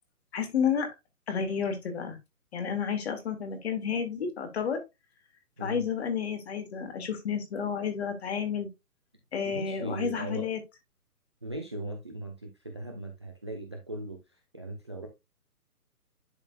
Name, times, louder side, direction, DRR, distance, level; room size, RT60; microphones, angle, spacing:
voice 1, 0.3-0.9 1.3-2.2 2.5-4.8 5.6-8.7 9.3-10.6, left 7 dB, 45° left, 2.1 m, -31 dB
voice 2, 9.4-10.5 11.4-14.2 14.5-15.1, right 1 dB, 20° right, 0.5 m, -38 dB
11.0 x 4.0 x 2.3 m
figure-of-eight pair, 145°, 46 cm